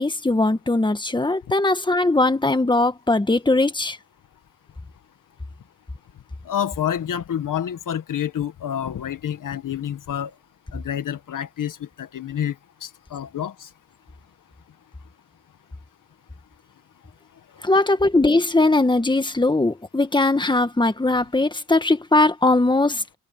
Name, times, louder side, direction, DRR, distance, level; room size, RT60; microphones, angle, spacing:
voice 1, 0.0-4.0 17.6-23.0, left 2 dB, 15° left, 1.7 m, -20 dB
voice 2, 6.5-10.3 10.7-13.7, left 9 dB, 80° left, 1.8 m, -28 dB
cardioid pair, 80°, 31 cm